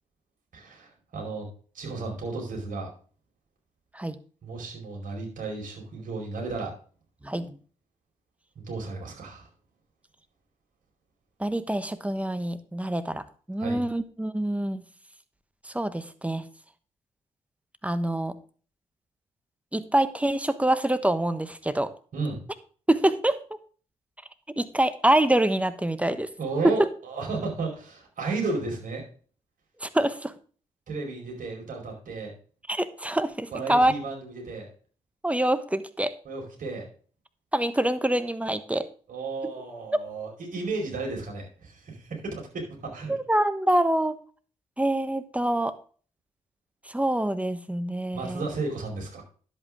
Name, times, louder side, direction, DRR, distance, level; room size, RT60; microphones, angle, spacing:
voice 1, 0.5-1.5 1.7-2.9 4.4-6.7 8.5-9.5 13.6-13.8 22.1-22.4 26.4-29.0 30.9-32.3 33.5-34.7 36.2-36.8 39.1-43.2 48.1-49.2, right 3 dB, 60° right, 0 dB, 4.9 m, -33 dB
voice 2, 7.2-7.6 11.4-14.8 15.6-16.4 17.8-18.3 19.7-21.9 22.9-23.4 24.6-26.3 26.6-26.7 29.8-30.3 32.7-33.9 35.2-36.1 37.5-38.8 39.4-39.5 43.1-44.2 44.8-45.7 46.8-48.5, right 1 dB, 10° right, 12 dB, 1.2 m, -25 dB
10.5 x 8.1 x 3.6 m, 0.41 s
hypercardioid pair, 40°, 16 cm